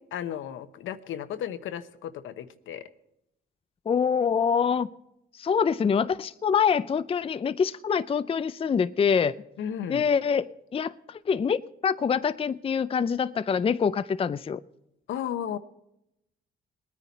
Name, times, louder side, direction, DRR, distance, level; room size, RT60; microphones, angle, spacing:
voice 1, 0.1-2.9 9.6-10.1 15.1-15.6, left 9 dB, 75° left, 11 dB, 1.0 m, -34 dB
voice 2, 3.9-4.9 5.4-9.3 9.9-14.6, left 6 dB, 30° left, 13 dB, 0.5 m, -25 dB
20.5 x 9.7 x 4.1 m, 0.82 s
cardioid pair, 90°, 20 cm